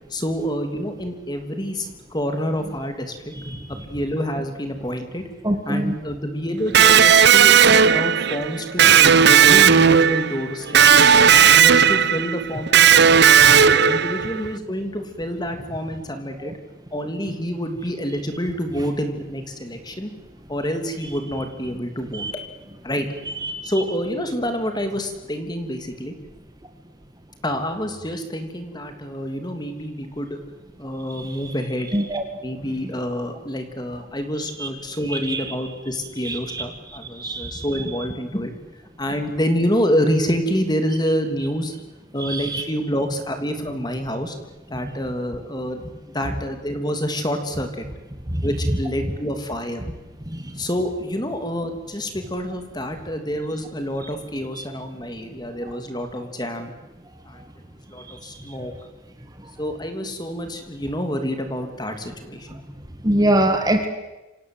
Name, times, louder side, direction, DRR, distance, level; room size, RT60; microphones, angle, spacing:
voice 1, 0.1-3.3 3.9-5.3 5.6-10.8 11.3-13.2 13.7-16.5 16.9-20.1 20.5-22.2 22.8-23.1 23.6-26.1 27.4-30.4 30.8-31.9 32.4-38.5 39.0-41.7 42.1-44.3 44.7-47.8 48.4-49.8 50.5-56.7 57.2-57.4 57.9-58.7 59.6-62.6, equal, 20° left, 6 dB, 3.0 m, -27 dB
voice 2, 5.4-5.9 10.8-11.4 16.4-16.5 22.1-22.3 23.4-23.6 31.9-32.2 34.6-34.7 35.1-35.4 36.2-36.6 37.2-37.7 42.2-42.6 48.3-48.4 50.3-50.4 54.6-54.7 63.0-63.9, right 1 dB, 20° right, 6 dB, 1.9 m, -23 dB
Electric guitar, 6.7-14.4, right 7 dB, 55° right, 0.9 m, -14 dB
28.5 x 25.5 x 8.1 m, 1.1 s
head